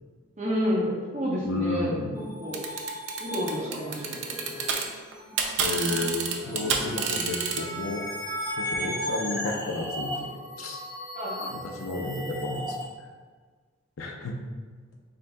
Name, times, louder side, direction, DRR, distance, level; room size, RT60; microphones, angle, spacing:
voice 1, 0.4-2.6 3.2-4.8 11.1-11.5, equal, 35° right, -5 dB, 0.9 m, -30 dB
voice 2, 1.4-2.2 5.6-8.0 8.6-10.8 11.5-12.8 14.0-14.4, left 2 dB, 85° left, 2 dB, 0.6 m, -32 dB
sound 1, 2.1-12.8, equal, 20° left, 1.2 m, -36 dB
sound 2, 2.5-4.8 5.1-7.6, right 6 dB, 60° right, 0.5 m, -28 dB
sound 3, 3.4-4.1 4.4-4.7 6.4-7.8, right 1 dB, 85° right, 1.4 m, -43 dB
7.5 x 2.7 x 2.3 m, 1.5 s
head